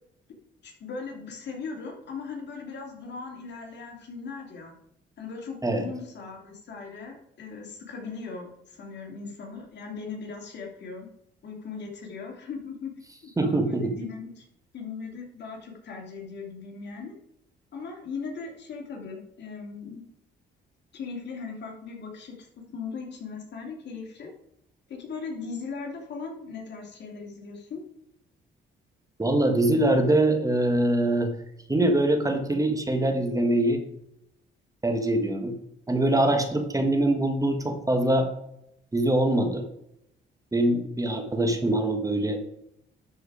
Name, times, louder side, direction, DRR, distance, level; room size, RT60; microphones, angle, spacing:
voice 1, 0.6-4.7 5.2-11.1 11.4-12.9 13.4-14.5 14.7-17.1 17.7-20.0 20.9-24.3 24.9-27.8, left 5 dB, 60° left, 1 dB, 2.5 m, -38 dB
voice 2, 13.4-13.9 29.2-31.3 31.7-33.8 34.8-35.5 35.9-38.3 38.9-39.6 40.5-42.4, right 1 dB, 15° right, 5 dB, 1.4 m, -23 dB
12.0 x 4.7 x 4.9 m, 0.79 s
cardioid pair, 90°, 20 cm